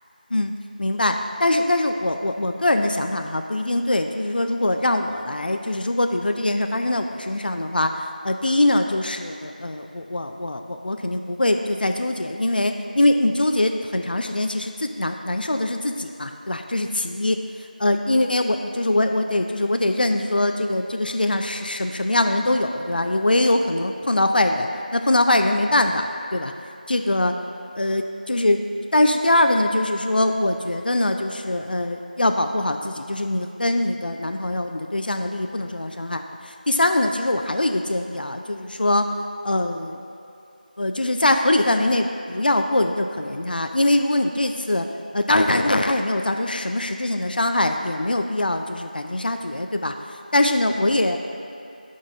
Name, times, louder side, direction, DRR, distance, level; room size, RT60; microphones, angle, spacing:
voice 1, 0.8-17.5 17.8-26.5 26.9-27.3 27.8-28.6 28.9-39.1 39.4-40.0 40.8-44.9 45.1-51.2, left 1 dB, 75° left, 6 dB, 0.4 m, -22 dB
9.3 x 5.4 x 2.5 m, 2.6 s
figure-of-eight pair, 175°, 5 cm